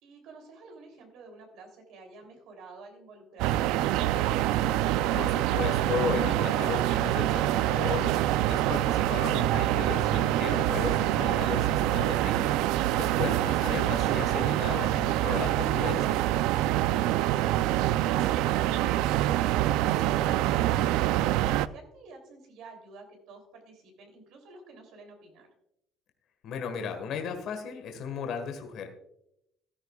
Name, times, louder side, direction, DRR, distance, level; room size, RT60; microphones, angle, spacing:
voice 1, 0.0-4.3 18.9-25.5, right 3 dB, 65° right, 3 dB, 3.1 m, -50 dB
sound 1, 3.4-21.7, right 13 dB, 85° right, 0.4 m, -25 dB
voice 2, 5.1-16.2 26.4-28.9, left 6 dB, 55° left, 5 dB, 1.5 m, -35 dB
14.0 x 13.0 x 2.4 m, 0.81 s
cardioid pair, 165°, 0 cm